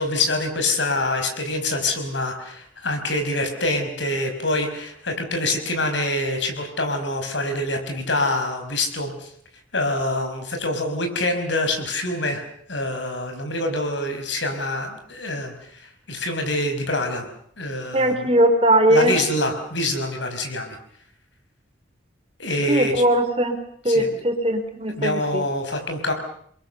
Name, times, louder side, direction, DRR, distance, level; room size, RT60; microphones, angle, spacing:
voice 1, 0.0-9.3 9.7-15.5 15.8-17.3 17.6-18.3 18.9-20.8 22.4-22.9 23.9-24.2 25.0-26.1, left 2 dB, 70° left, 5 dB, 5.6 m, -25 dB
voice 2, 17.9-19.1 22.7-23.6 23.8-25.4, right 1 dB, 30° right, 7 dB, 3.4 m, -19 dB
29.0 x 22.5 x 6.9 m, 0.64 s
head